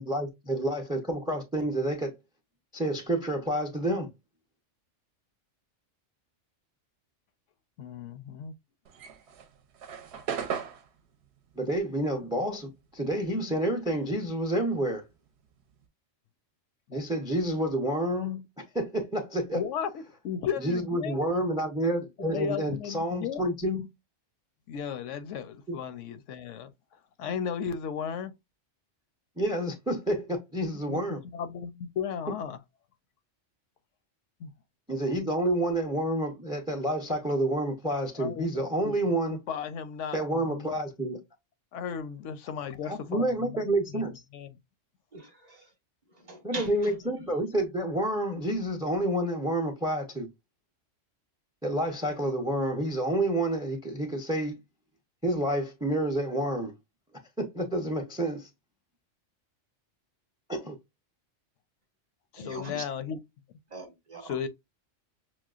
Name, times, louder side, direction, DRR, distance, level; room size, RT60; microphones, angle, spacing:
voice 1, 0.0-2.1 2.7-4.1 11.6-15.0 16.9-18.4 18.7-19.6 20.6-23.9 25.7-25.8 29.4-31.2 34.9-39.4 40.1-41.2 42.8-44.1 46.4-50.3 51.6-54.5 55.2-56.7 57.4-58.5 60.5-60.8, right 1 dB, 5° right, 0.4 m, -29 dB
voice 2, 7.8-8.5 16.9-17.0 19.5-21.3 22.2-23.4 24.7-28.3 30.9-31.0 31.3-32.6 34.4-34.5 38.2-39.0 39.5-40.7 41.7-44.1 44.3-44.5 62.3-63.2 64.2-64.5, left 7 dB, 80° left, 0.9 m, -35 dB
sound 1, 8.9-13.6 13.9-15.9, right 7 dB, 70° right, 0.8 m, -38 dB
voice 3, 45.1-45.7 46.1-47.3 62.4-62.8 63.7-64.5, right 2 dB, 40° right, 0.9 m, -42 dB
6.0 x 2.0 x 2.3 m
omnidirectional pair, 1.3 m